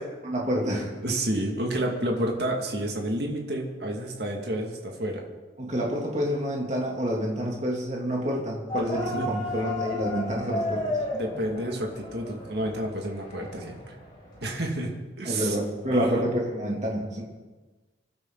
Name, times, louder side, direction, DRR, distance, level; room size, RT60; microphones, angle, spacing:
voice 1, 0.2-0.9 5.6-11.0 15.2-17.2, equal, 40° right, -2 dB, 3.0 m, -28 dB
voice 2, 1.0-5.2 8.7-9.3 11.1-13.9 14.4-15.6 15.9-16.2, right 1 dB, 60° right, 0 dB, 2.4 m, -30 dB
sound 1, 8.7-14.6, left 1 dB, 25° left, 5.9 m, -34 dB
26.5 x 12.0 x 4.1 m, 1.3 s
head